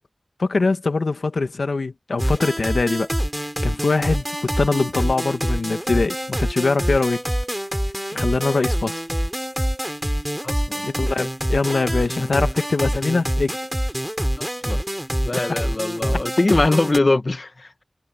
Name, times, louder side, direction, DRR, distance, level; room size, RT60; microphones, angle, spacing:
voice 1, 0.4-3.1 3.6-7.2 8.1-9.0 10.8-13.6, left 3 dB, 80° left, 1.5 m, -22 dB
sound 1, 2.2-17.0, equal, 10° right, 7.0 m, -25 dB
voice 2, 10.4-10.8 14.3-14.8 15.2-17.7, left 2 dB, 50° left, 1.4 m, -22 dB
wide cardioid pair, 55°, 0 cm